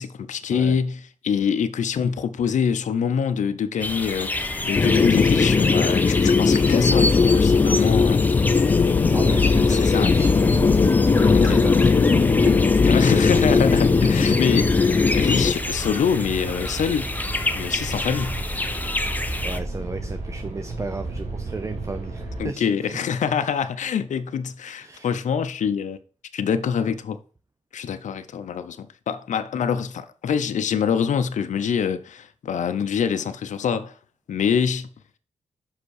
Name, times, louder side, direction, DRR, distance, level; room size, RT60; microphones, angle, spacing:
voice 1, 0.0-8.2 9.7-10.1 11.3-11.6 12.8-17.1 17.5-18.4 22.4-26.0 26.3-27.2 27.7-33.9 34.3-34.9, left 7 dB, 70° left, 0.6 m, -25 dB
sound 1, 3.8-19.6, left 2 dB, 15° left, 1.0 m, -29 dB
sound 2, 4.7-15.5, left 4 dB, 30° left, 0.4 m, -18 dB
sound 3, 8.7-22.4, right 2 dB, 65° right, 2.8 m, -33 dB
voice 2, 9.1-12.2 12.4-12.7 19.4-22.7 24.8-25.1, right 3 dB, 25° right, 0.6 m, -34 dB
5.8 x 5.2 x 6.4 m
cardioid pair, 75°, 13 cm